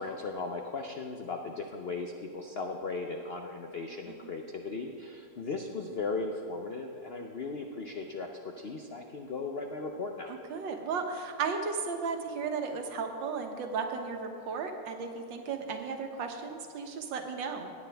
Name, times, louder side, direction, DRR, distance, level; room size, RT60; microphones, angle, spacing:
voice 1, 0.0-10.3, left 3 dB, 90° left, 3 dB, 0.5 m, -37 dB
voice 2, 10.3-17.7, right 5 dB, 80° right, 4 dB, 1.8 m, -35 dB
17.5 x 9.5 x 3.4 m, 2.7 s
omnidirectional pair, 2.0 m